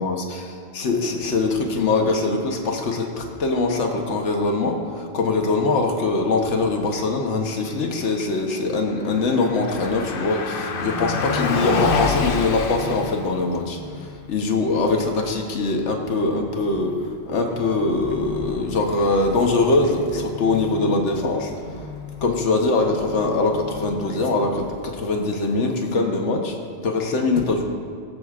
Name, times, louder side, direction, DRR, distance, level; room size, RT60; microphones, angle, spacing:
voice 1, 0.0-21.5 22.2-26.5 26.8-27.6, left 3 dB, 85° left, 2 dB, 1.3 m, -22 dB
Car passing by, 8.9-25.0, left 4 dB, 55° left, 0.8 m, -31 dB
22.0 x 7.7 x 2.4 m, 2.2 s
omnidirectional pair, 1.2 m